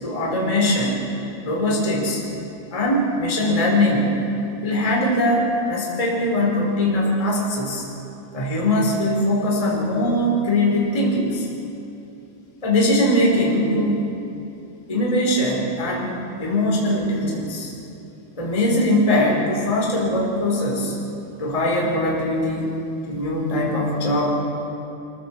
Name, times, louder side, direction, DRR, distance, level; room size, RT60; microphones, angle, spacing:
voice 1, 0.0-1.0 1.4-2.2 2.7-4.1 4.6-7.8 8.3-11.5 12.6-14.0 14.9-16.1 16.4-17.7 18.4-20.9 21.4-22.7 23.1-24.3, left 1 dB, 10° left, -3 dB, 3.0 m, -21 dB
24.5 x 15.5 x 7.3 m, 2.9 s
omnidirectional pair, 5.4 m